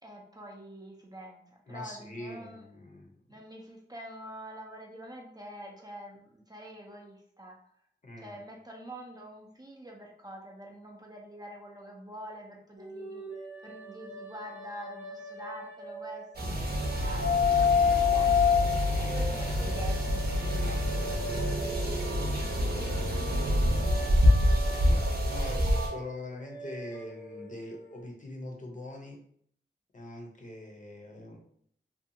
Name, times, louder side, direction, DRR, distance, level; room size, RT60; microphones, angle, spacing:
voice 1, 0.0-2.6 3.3-7.6 8.2-18.5 19.0-20.2 23.8-23.9, equal, 20° right, -1 dB, 0.5 m, -46 dB
voice 2, 1.7-3.1 8.0-8.4 17.6-17.9 18.8-19.2 20.5-21.6 24.8-29.2 29.9-31.4, left 1 dB, 40° left, 0 dB, 0.7 m, -43 dB
sound 1, 12.8-16.3 16.8-22.0 22.4-28.0, left 7 dB, 85° left, 1.1 m, -32 dB
sound 2, 16.3-25.9, equal, 55° right, 0.7 m, -28 dB
sound 3, 16.4-23.8, left 1 dB, 85° right, 0.8 m, -33 dB
2.6 x 2.3 x 2.7 m, 0.65 s
wide cardioid pair, 70°, 19 cm